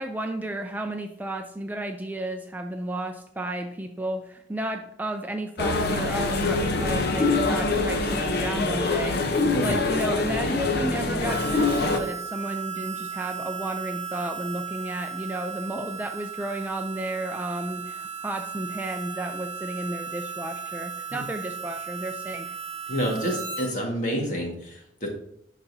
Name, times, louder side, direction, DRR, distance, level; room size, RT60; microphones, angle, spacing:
voice 1, 0.0-9.3 9.6-22.5, right 1 dB, 10° right, 4 dB, 0.4 m, -32 dB
sound 1, 5.6-12.0, left 3 dB, 60° left, 0.8 m, -24 dB
Harmonica, 11.3-23.7, right 7 dB, 30° right, 1.5 m, -36 dB
voice 2, 22.9-25.1, equal, 45° left, 0 dB, 1.7 m, -28 dB
11.5 x 4.0 x 2.7 m, 0.71 s
head